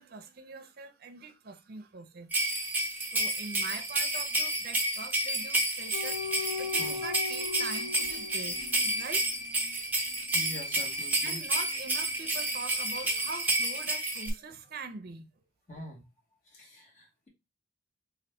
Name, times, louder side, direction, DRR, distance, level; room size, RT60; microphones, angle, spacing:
voice 1, 0.0-2.6 3.1-6.2 6.6-9.3 11.2-15.3, right 4 dB, 50° right, 0.6 m, -43 dB
sound 1, 2.3-14.3, right 1 dB, 10° right, 0.7 m, -30 dB
sound 2, 5.9-12.7 13.0-13.2, left 5 dB, 80° left, 0.8 m, -41 dB
voice 2, 10.3-11.4 15.7-16.0 16.5-17.3, equal, 35° left, 1.1 m, -44 dB
4.0 x 2.5 x 3.2 m
head